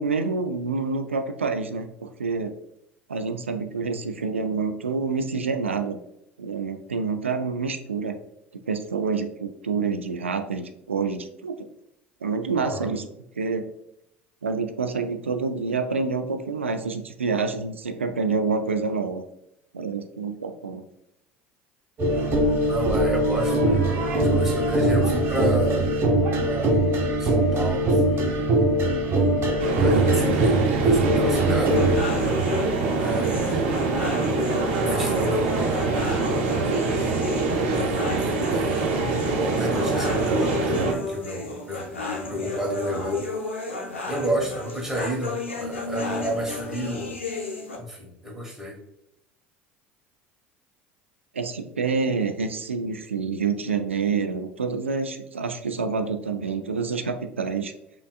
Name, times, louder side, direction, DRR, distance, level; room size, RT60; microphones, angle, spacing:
voice 1, 0.0-2.5 3.1-6.0 6.4-8.2 8.7-11.7 12.2-13.0 13.4-13.7 14.4-19.2 19.7-20.8 51.3-57.7, right 4 dB, 85° right, 7 dB, 0.3 m, -27 dB
voice 2, 12.6-12.9 22.6-25.9 26.4-26.9 27.2-28.5 29.7-31.8 33.0-33.7 34.9-36.2 37.7-39.1 39.3-41.9 42.3-43.3 44.1-47.1 47.8-48.8, right 1 dB, 5° right, -2 dB, 1.4 m, -31 dB
sound 1, 22.0-32.0, right 1 dB, 40° right, 1.0 m, -22 dB
sound 2, 29.6-40.9, right 3 dB, 65° right, 0.9 m, -24 dB
sound 3, 31.8-47.8, left 3 dB, 85° left, 0.7 m, -33 dB
5.6 x 2.5 x 2.3 m, 0.80 s
figure-of-eight pair, 65°, 6 cm